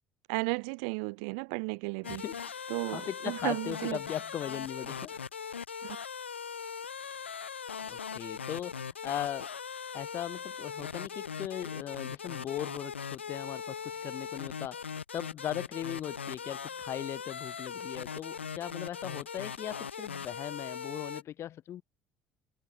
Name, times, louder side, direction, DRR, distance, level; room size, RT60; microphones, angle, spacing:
voice 1, 0.3-2.2 2.7-4.0 5.8-6.0, right 37 dB, 65° right, 0.7 m, -34 dB
sound 1, 2.0-21.2, left 6 dB, 80° left, 0.9 m, -40 dB
voice 2, 2.1-5.2 7.0-7.2 7.9-9.5 9.9-21.8, left 11 dB, 45° left, 1.0 m, -39 dB
figure-of-eight pair, 55°, 6 cm